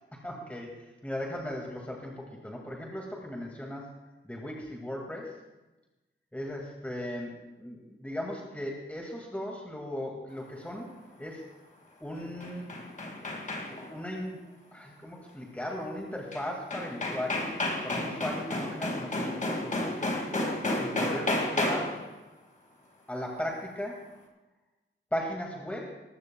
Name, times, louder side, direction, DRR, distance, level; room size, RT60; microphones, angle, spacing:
voice 1, 0.1-0.7 1.0-3.9 4.2-5.4 6.3-11.5 12.0-12.7 13.9-14.4 14.7-17.6 17.8-20.2 20.8-22.0 23.1-24.0 25.1-26.0, left 1 dB, 5° left, -1 dB, 2.0 m, -37 dB
sound 1, 12.2-14.0 16.3-16.4 16.7-22.1, left 1 dB, 35° left, 2.1 m, -31 dB
20.0 x 15.0 x 2.3 m, 1.1 s
wide cardioid pair, 130°, 21 cm